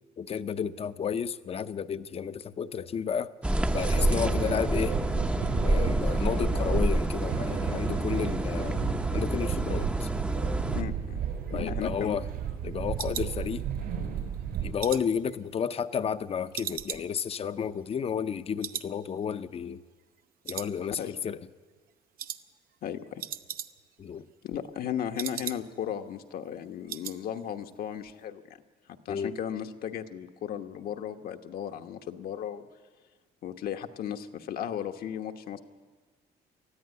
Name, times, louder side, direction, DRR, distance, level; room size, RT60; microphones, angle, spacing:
voice 1, 0.2-3.3 3.7-5.0 5.6-8.8 9.1-10.1 11.5-12.2 12.6-13.6 14.6-19.8 20.4-21.4 24.0-24.3 29.1-29.4, left 7 dB, 35° left, 12 dB, 0.7 m, -32 dB
sound 1, 3.4-10.8, right 1 dB, 5° right, 0.7 m, -28 dB
sound 2, 3.7-14.7, right 8 dB, 80° right, 4.3 m, -33 dB
voice 2, 10.7-11.2 11.5-12.2 21.0-21.2 22.8-23.2 24.4-28.6 29.0-32.7 33.4-35.6, left 9 dB, 60° left, 6 dB, 1.2 m, -35 dB
sound 3, 11.3-14.0 14.4-16.2 16.5-18.3 18.6-19.0 19.2-19.3 19.8-20.2 20.4-21.2 21.5-21.8 22.2-22.4 22.7-22.8 23.0-24.0 24.3-25.9 26.2-26.3 26.6-27.2 27.5-27.8 28.0-28.1, right 10 dB, 60° right, 0.8 m, -40 dB
20.0 x 13.5 x 9.6 m, 1.5 s
cardioid pair, 110°, 17 cm